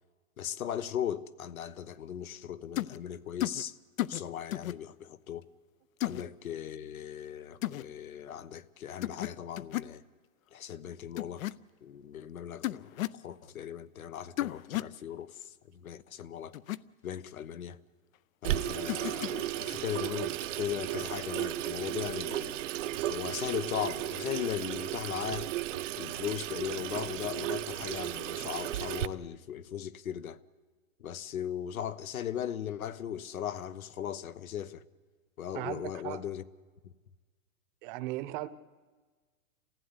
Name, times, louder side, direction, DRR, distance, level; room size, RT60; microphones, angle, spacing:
voice 1, 0.4-3.8 4.1-5.4 6.0-10.0 10.5-11.4 11.8-16.5 17.0-17.8 18.4-22.6 23.1-25.5 26.0-30.4 31.0-34.8 35.4-36.4 36.8-36.9, left 9 dB, 90° left, 1.2 m, -38 dB
sound 1, 2.8-3.0 3.4-3.6 4.0-4.2 4.5-4.7 6.0-6.2 7.6-7.8 9.0-9.3 9.6-9.9 11.2-11.5 12.6-13.2 14.4-14.9 16.5-16.8 18.9-19.4, left 15 dB, 75° left, 0.8 m, -33 dB
Water tap faucet / Sink (filling or washing), 18.4-29.1, right 13 dB, 65° right, 0.9 m, -35 dB
voice 2, 35.5-36.2 37.8-38.5, right 15 dB, 35° right, 0.9 m, -37 dB
28.5 x 15.5 x 9.8 m
hypercardioid pair, 145°, 41 cm